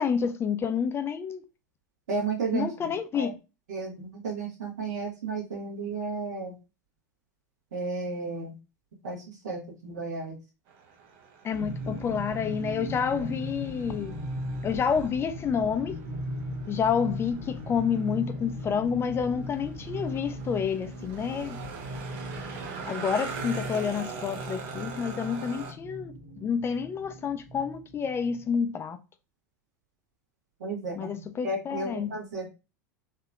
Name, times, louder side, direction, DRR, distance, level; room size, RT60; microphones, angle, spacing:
voice 1, 0.0-1.4 2.5-3.3 11.4-14.2 14.6-16.0 16.7-21.6 22.8-29.0 31.0-32.1, left 7 dB, 25° left, 0.4 m, -29 dB
voice 2, 2.1-2.9 3.2-3.3 3.7-6.6 7.7-8.6 9.0-10.4 11.6-11.7 30.6-32.5, right 3 dB, 70° right, 1.4 m, -33 dB
sound 1, 10.7-25.7, right 5 dB, 55° right, 0.9 m, -43 dB
sound 2, 11.5-28.7, equal, 75° left, 1.0 m, -38 dB
3.5 x 2.8 x 2.3 m
figure-of-eight pair, 85°, 10 cm